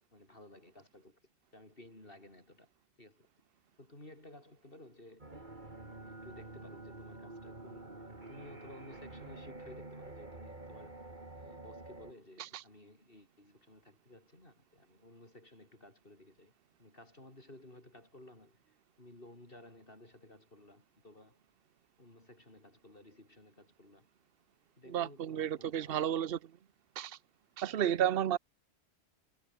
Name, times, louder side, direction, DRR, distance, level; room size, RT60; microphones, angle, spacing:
voice 1, 0.1-1.2 1.5-2.7 3.0-3.3 3.8-5.3 5.9-11.1 11.3-16.5 16.8-18.6 19.0-21.4 22.0-24.1 24.8-26.3, left 1 dB, 50° left, 5.4 m, -55 dB
sound 1, 5.2-12.1, right 2 dB, 40° right, 3.3 m, -48 dB
voice 2, 24.9-26.4 27.0-27.2 27.6-28.4, right 10 dB, 55° right, 1.0 m, -32 dB
omnidirectional pair, 1.2 m